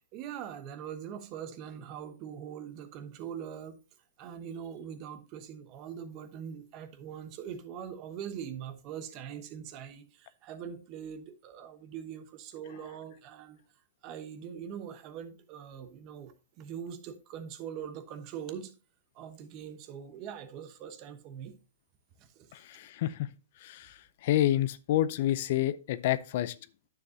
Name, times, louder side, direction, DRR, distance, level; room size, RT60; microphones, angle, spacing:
voice 1, 0.0-3.8 4.2-13.6 14.0-18.7 19.1-21.6 22.2-22.5, right 8 dB, 35° right, 1.0 m, -42 dB
voice 2, 22.5-23.3 23.6-23.9 24.2-26.5, left 13 dB, 50° left, 0.5 m, -28 dB
9.6 x 7.0 x 2.8 m
hypercardioid pair, 150°, 0 cm